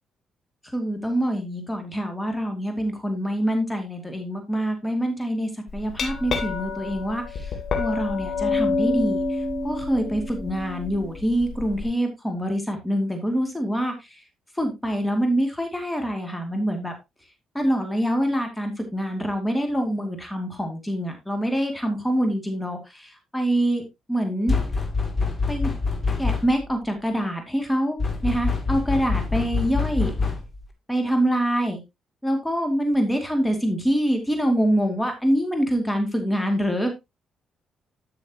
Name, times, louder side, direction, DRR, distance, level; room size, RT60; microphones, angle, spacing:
voice 1, 0.6-14.2 14.5-16.9 17.5-23.8 24.1-24.5 25.5-25.7 26.2-30.1 30.9-31.8 32.2-36.9, equal, 10° left, 4 dB, 2.5 m, -25 dB
Glass, 5.7-11.8, left 3 dB, 60° left, 2.9 m, -28 dB
sound 1, 24.5-26.7 28.0-30.7, left 4 dB, 25° left, 2.7 m, -25 dB
12.5 x 6.3 x 2.9 m, 0.22 s
cardioid pair, 90°, 0 cm